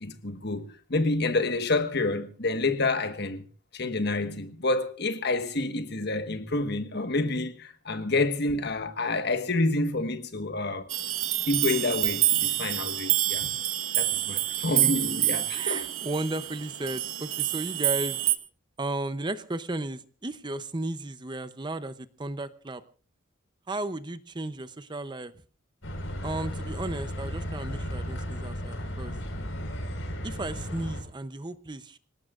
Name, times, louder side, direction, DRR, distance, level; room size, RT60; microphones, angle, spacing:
voice 1, 0.0-3.4 3.7-10.9 11.5-13.5 13.9-15.9, left 2 dB, 55° left, 1.5 m, -28 dB
sound 1, 10.9-18.4, right 14 dB, 75° right, 1.4 m, -27 dB
voice 2, 15.5-18.2 18.8-22.8 23.7-25.3 26.2-29.1 30.2-32.0, right 2 dB, 20° right, 0.7 m, -34 dB
sound 2, 25.8-31.0, equal, 70° left, 4.8 m, -34 dB
27.0 x 18.5 x 2.5 m
head